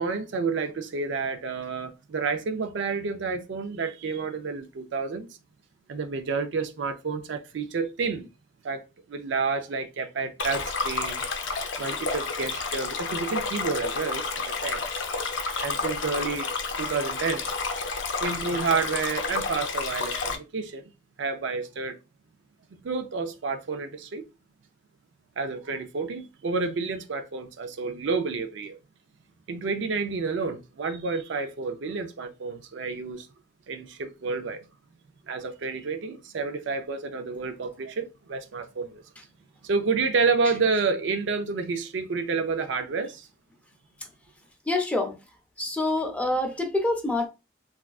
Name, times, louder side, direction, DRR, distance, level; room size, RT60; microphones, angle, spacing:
voice 1, 0.0-5.3 5.9-8.3 8.6-8.8 9.1-11.2 11.8-14.8 15.6-16.5 16.8-17.5 18.2-20.8 21.2-22.0 22.7-24.2 25.4-28.8 29.5-33.3 33.7-34.7 35.3-39.0 39.6-43.3, right 4 dB, 70° right, 0.4 m, -29 dB
Stream, 10.4-20.4, left 4 dB, 75° left, 0.5 m, -30 dB
voice 2, 44.7-45.2 45.6-47.3, left 2 dB, 5° left, 0.5 m, -26 dB
3.4 x 2.4 x 2.3 m
head